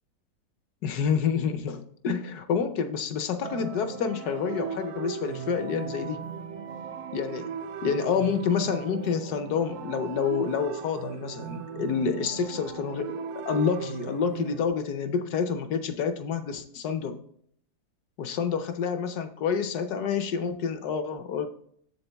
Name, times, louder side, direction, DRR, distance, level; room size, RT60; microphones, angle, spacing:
voice 1, 0.8-6.2 7.1-7.5 7.8-17.2 18.2-21.5, left 6 dB, 65° left, 9 dB, 1.1 m, -28 dB
sound 1, 3.4-14.7, right 7 dB, 70° right, 0.9 m, -37 dB
7.4 x 7.0 x 3.4 m, 0.65 s
omnidirectional pair, 2.0 m